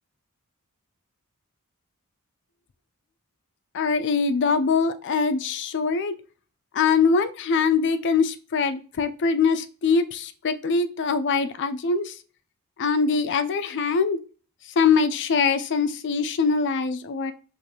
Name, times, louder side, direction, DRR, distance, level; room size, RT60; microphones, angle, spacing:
voice 1, 3.7-6.1 6.7-12.1 12.8-14.2 14.8-17.3, left 5 dB, 55° left, 10 dB, 0.4 m, -23 dB
4.8 x 2.6 x 2.8 m, 0.37 s
head